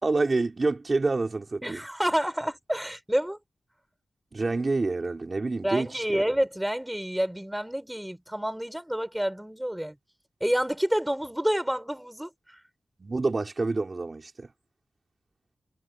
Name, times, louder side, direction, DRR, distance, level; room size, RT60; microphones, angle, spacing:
voice 1, 0.0-1.8 4.3-6.2 13.0-14.5, right 3 dB, 35° right, 3.8 m, -27 dB
voice 2, 1.6-3.4 5.6-10.0 10.4-12.6, equal, 5° right, 6.2 m, -28 dB
wide cardioid pair, 170°, 0 cm